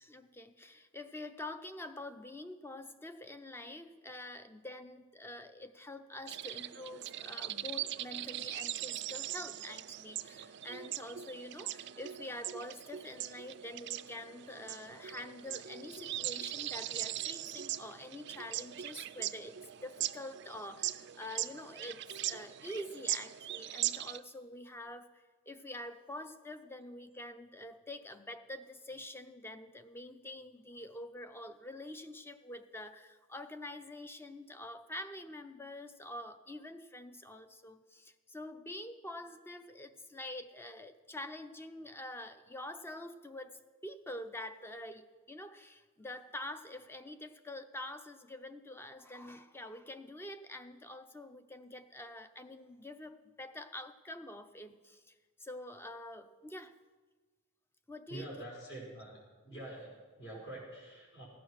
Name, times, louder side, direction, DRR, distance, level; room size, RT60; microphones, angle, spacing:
voice 1, 0.0-25.1 25.5-45.0 45.3-55.1 55.4-56.7 57.9-58.3, left 1 dB, 10° left, 9 dB, 0.5 m, -46 dB
sound 1, 6.3-24.2, right 13 dB, 50° right, 0.4 m, -40 dB
voice 2, 58.1-59.2 59.4-61.2, right 1 dB, 60° left, -3 dB, 5.4 m, -46 dB
15.0 x 9.2 x 6.4 m, 1.4 s
head